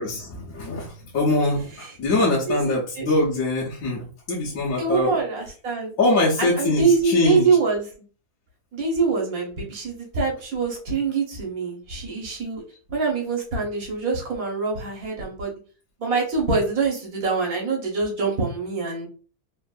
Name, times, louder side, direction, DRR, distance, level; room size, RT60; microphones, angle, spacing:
voice 1, 0.0-5.2 6.0-7.5, left 2 dB, 65° left, -6 dB, 1.2 m, -23 dB
voice 2, 2.5-3.1 4.8-5.9 6.4-7.9 8.7-12.6 12.9-15.6 16.0-19.1, right 4 dB, 65° right, -1 dB, 1.5 m, -24 dB
3.5 x 2.5 x 2.3 m, 0.39 s
omnidirectional pair, 1.6 m